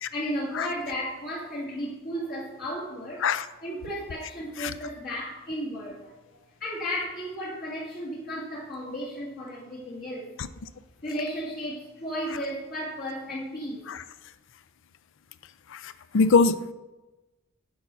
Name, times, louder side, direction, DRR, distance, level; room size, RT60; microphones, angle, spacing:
voice 1, 0.1-3.3 3.6-6.1 6.6-10.3 11.0-13.8, equal, 50° left, -6 dB, 1.9 m, -34 dB
voice 2, 16.1-16.7, left 4 dB, 65° left, 14 dB, 0.5 m, -21 dB
8.4 x 5.6 x 6.0 m, 1.1 s
head